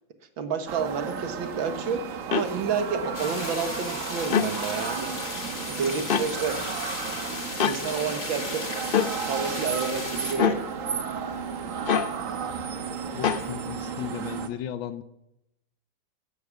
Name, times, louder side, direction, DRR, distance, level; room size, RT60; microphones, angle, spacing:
voice 1, 0.4-5.2 5.6-6.6 7.6-8.6 9.3-10.6, right 5 dB, 85° right, 8 dB, 2.2 m, -30 dB
sound 1, 0.7-14.5, right 6 dB, 50° right, 1.3 m, -34 dB
sound 2, 2.3-2.5 4.2-4.5 6.1-6.3 7.6-7.8 8.9-9.1 10.4-10.6 11.9-12.1 13.2-13.4, left 7 dB, 65° left, 0.5 m, -23 dB
sound 3, 3.1-10.3, left 2 dB, 35° left, 3.2 m, -35 dB
voice 2, 11.9-15.0, left 10 dB, 80° left, 12 dB, 1.5 m, -37 dB
14.0 x 9.9 x 7.1 m, 0.85 s
omnidirectional pair, 2.1 m